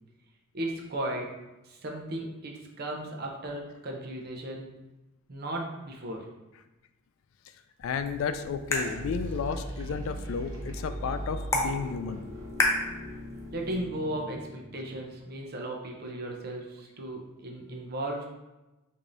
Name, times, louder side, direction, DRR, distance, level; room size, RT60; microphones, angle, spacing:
voice 1, 0.5-1.3 1.6-4.8 5.3-6.3 13.5-18.3, right 1 dB, 50° right, 1 dB, 0.6 m, -36 dB
voice 2, 7.8-12.3, left 6 dB, 80° left, 10 dB, 0.3 m, -32 dB
sound 1, 7.8-13.8, left 1 dB, 15° left, 0.4 m, -34 dB
sound 2, 8.7-15.3, equal, 85° right, 0.9 m, -40 dB
4.8 x 2.7 x 2.6 m, 1.0 s
head